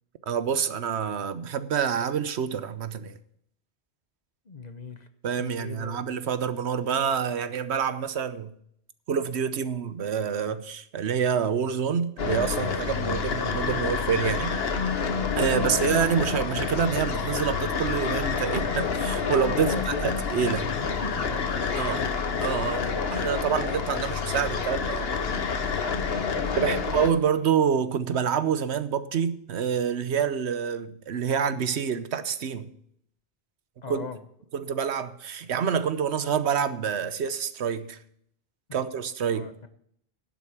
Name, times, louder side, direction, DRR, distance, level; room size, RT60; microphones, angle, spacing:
voice 1, 0.3-3.2 5.2-8.5 9.1-14.5 15.4-20.7 21.7-22.0 22.4-25.1 26.6-32.7 33.9-34.1 34.5-38.0 38.7-39.5, right 7 dB, 85° right, 12 dB, 1.1 m, -27 dB
voice 2, 4.5-5.1 5.4-6.0 15.6-15.8 19.5-20.2 20.5-22.1 26.0-26.9 33.8-34.2 38.7-38.8 39.3-39.7, left 4 dB, 40° left, 9 dB, 1.1 m, -39 dB
sound 1, 12.2-27.1, left 5 dB, 65° left, 1.3 m, -28 dB
11.5 x 8.0 x 7.2 m, 0.68 s
omnidirectional pair, 1.1 m